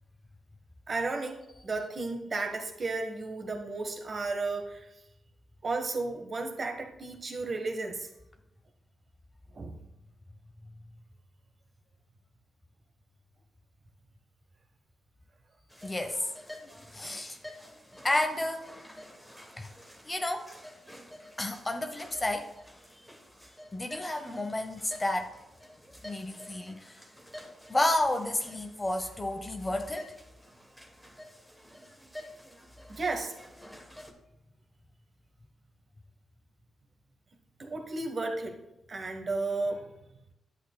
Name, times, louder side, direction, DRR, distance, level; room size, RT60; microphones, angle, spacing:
voice 1, 0.9-4.9 5.6-8.1 9.5-9.8 32.9-33.3 37.6-38.6 38.9-39.9, right 3 dB, 40° right, 4 dB, 1.2 m, -33 dB
sound 1, 15.7-34.1, left 1 dB, 5° left, 1.1 m, -50 dB
voice 2, 15.8-16.3 16.6-17.4 18.0-18.7 19.6-19.7 20.0-20.5 21.4-22.5 23.7-25.3 26.0-27.0 27.7-30.1, left 1 dB, 20° left, 6 dB, 0.8 m, -31 dB
11.0 x 7.9 x 2.2 m, 0.90 s
cardioid pair, 105°, 0 cm